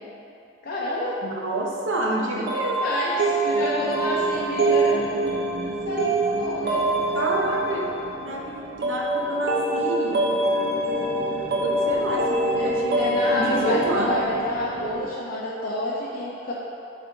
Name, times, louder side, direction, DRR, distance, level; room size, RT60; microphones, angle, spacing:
voice 1, 0.6-1.1 2.4-2.5 2.8-5.0 5.6-6.8 12.5-12.7 13.0-16.5, left 1 dB, 50° left, -7 dB, 0.7 m, -28 dB
voice 2, 1.2-2.9 7.1-7.9 8.2-10.2 11.6-14.1, right 1 dB, 85° right, -2 dB, 0.9 m, -28 dB
sound 1, 2.5-15.1, right 2 dB, 55° right, 0.7 m, -25 dB
7.5 x 3.5 x 3.9 m, 2.8 s
head